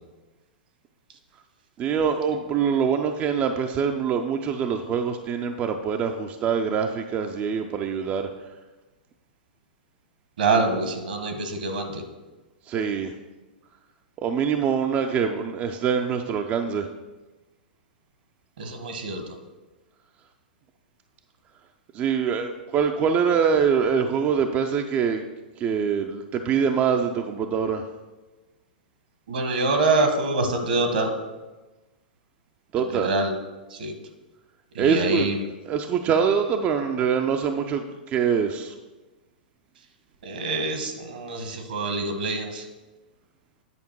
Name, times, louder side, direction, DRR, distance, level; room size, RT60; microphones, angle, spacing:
voice 1, 1.8-8.3 12.7-13.1 14.2-16.9 21.9-25.3 25.6-27.9 32.7-33.1 34.8-35.3 35.6-38.7, right 7 dB, 30° right, 5 dB, 0.5 m, -24 dB
voice 2, 10.4-12.0 18.6-19.2 29.3-31.1 32.9-33.3 33.8-33.9 34.8-35.4 40.2-42.6, right 2 dB, 70° right, 6 dB, 1.3 m, -25 dB
9.7 x 5.1 x 4.6 m, 1.2 s
hypercardioid pair, 110°, 5 cm